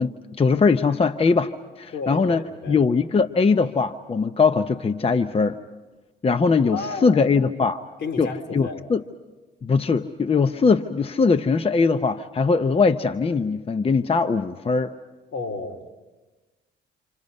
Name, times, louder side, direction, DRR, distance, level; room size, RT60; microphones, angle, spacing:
voice 1, 0.0-2.4 2.7-5.6 6.2-7.8 8.2-9.0 9.6-14.9, left 4 dB, 30° left, 10 dB, 0.7 m, -21 dB
voice 2, 1.9-2.8 6.7-7.2 8.0-8.8 15.3-15.8, left 4 dB, 65° left, 3 dB, 3.3 m, -32 dB
28.0 x 27.5 x 5.4 m, 1.2 s
cardioid pair, 90°, 20 cm